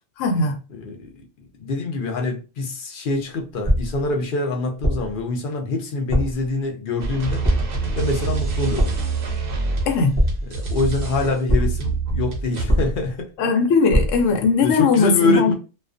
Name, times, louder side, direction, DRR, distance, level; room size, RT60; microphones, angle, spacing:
voice 1, 0.2-0.6 9.9-10.1 13.4-15.5, left 4 dB, 80° left, 0.9 m, -19 dB
voice 2, 0.8-1.1 1.4-7.4 7.9-8.9 10.5-13.3 14.6-15.5, left 3 dB, 55° left, 0.6 m, -25 dB
sound 1, 3.7-4.1 4.8-5.2 6.1-6.5 7.4-7.9 8.8-9.2 10.1-10.7 11.5-11.9 12.7-13.2 13.9-14.3, equal, 25° left, 0.7 m, -22 dB
sound 2, 7.0-12.6, right 4 dB, 55° right, 0.7 m, -26 dB
2.3 x 2.2 x 2.4 m
omnidirectional pair, 1.3 m